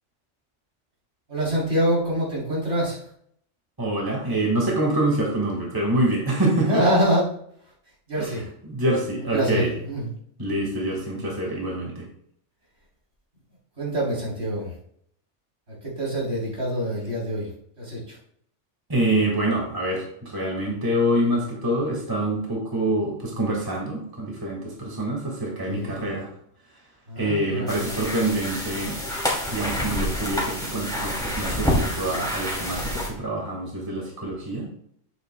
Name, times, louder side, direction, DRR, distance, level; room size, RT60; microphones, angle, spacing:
voice 1, 1.3-3.0 6.7-7.3 8.1-8.4 9.3-10.1 13.8-14.7 15.8-17.5 17.8-18.2 25.7-25.9 27.1-28.0, right 1 dB, 60° right, -6 dB, 3.9 m, -25 dB
voice 2, 3.8-6.8 8.2-9.7 10.4-12.1 18.9-26.3 27.2-29.0 29.5-34.7, right 1 dB, 15° right, -2 dB, 1.8 m, -26 dB
sound 1, 27.7-33.1, equal, 5° left, 2.7 m, -28 dB
10.5 x 7.8 x 2.3 m, 0.68 s
omnidirectional pair, 1.3 m